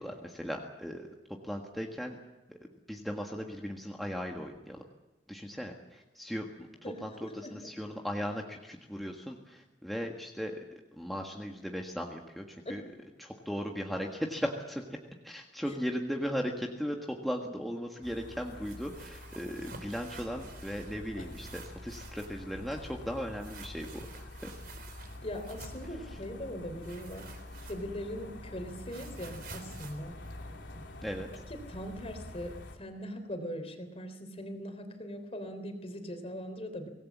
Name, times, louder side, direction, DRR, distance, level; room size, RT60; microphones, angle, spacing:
voice 1, 0.0-2.2 2.5-2.6 2.9-4.8 5.3-6.7 7.0-10.6 10.9-12.8 13.2-15.0 15.2-24.5 26.1-26.2 31.0-31.3, equal, ahead, 0 dB, 1.6 m, -37 dB
voice 2, 6.8-7.5 12.7-12.8 25.2-27.2 27.7-30.1 31.5-36.9, equal, 35° left, 7 dB, 3.5 m, -40 dB
sound 1, 18.0-32.8, left 1 dB, 85° left, 3.2 m, -47 dB
sound 2, 18.5-21.0 21.2-22.4 23.4-25.9 26.8-28.1 28.4-31.1, right 4 dB, 50° right, 4.1 m, -51 dB
25.0 x 18.5 x 7.4 m, 1.1 s
head